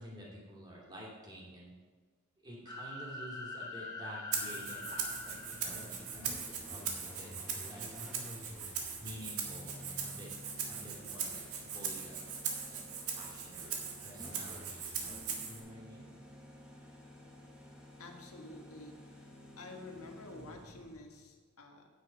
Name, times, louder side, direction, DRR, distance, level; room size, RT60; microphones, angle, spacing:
voice 1, 0.0-1.7 2.4-8.1 9.0-10.3 10.7-12.2 12.7-16.1, equal, 20° right, -5 dB, 2.8 m, -50 dB
sound 1, 2.6-6.4, left 2 dB, 15° left, 1.2 m, -44 dB
Rattle (instrument), 4.3-15.6, right 6 dB, 85° right, 1.7 m, -40 dB
sound 2, 4.4-21.2, equal, 5° right, 1.6 m, -52 dB
voice 2, 18.0-19.3 19.6-21.9, left 2 dB, 85° left, 2 dB, 1.6 m, -50 dB
9.3 x 9.2 x 4.7 m, 1.4 s
head